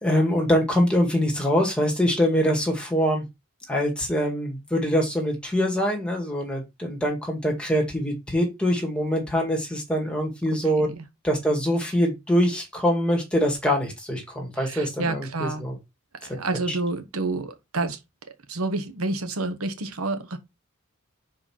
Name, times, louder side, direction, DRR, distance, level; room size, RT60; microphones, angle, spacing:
voice 1, 0.0-3.2 3.7-10.9 11.2-15.8 16.3-16.4 16.7-16.8, equal, 5° left, 2.1 m, -24 dB
voice 2, 14.6-15.6 16.2-18.0 18.5-20.4, right 2 dB, 85° right, 1.1 m, -29 dB
5.8 x 4.8 x 4.4 m
head